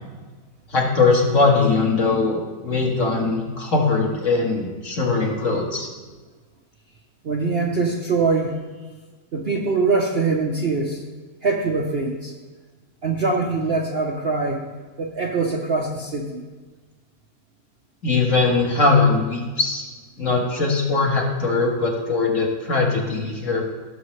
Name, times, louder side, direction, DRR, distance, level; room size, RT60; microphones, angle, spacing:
voice 1, 0.7-5.9 18.0-19.9 20.2-23.7, left 3 dB, 50° left, -1 dB, 1.9 m, -20 dB
voice 2, 7.2-8.6 9.3-11.0 11.4-12.3 13.0-14.7 15.0-16.4, right 3 dB, 50° right, 1 dB, 0.8 m, -23 dB
16.5 x 6.4 x 3.2 m, 1.3 s
omnidirectional pair, 1.8 m